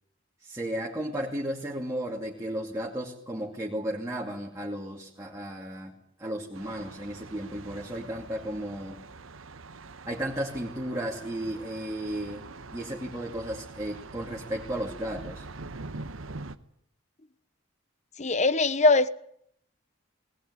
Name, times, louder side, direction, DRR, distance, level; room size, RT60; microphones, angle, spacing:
voice 1, 0.4-5.9 6.2-9.0 10.0-12.5 12.7-15.5, right 1 dB, 15° right, -2 dB, 2.6 m, -34 dB
Thunder, 6.5-16.6, right 3 dB, 85° right, 1.1 m, -44 dB
voice 2, 18.2-19.1, left 3 dB, 35° left, 16 dB, 0.9 m, -21 dB
19.5 x 19.0 x 9.8 m, 0.71 s
head